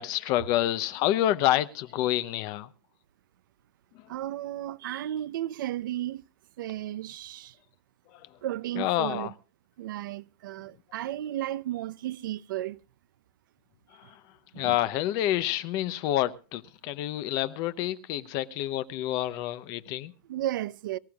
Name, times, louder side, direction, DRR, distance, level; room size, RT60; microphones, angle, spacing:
voice 1, 0.0-2.7 8.1-8.3 8.8-9.3 13.9-14.2 14.6-20.1, left 13 dB, 35° left, 0.7 m, -28 dB
voice 2, 4.1-6.2 6.6-7.5 8.4-9.3 9.8-12.8 14.5-14.8 20.2-21.0, right 13 dB, 65° right, 0.7 m, -34 dB
24.0 x 14.5 x 2.4 m
supercardioid pair, 165°, 11 cm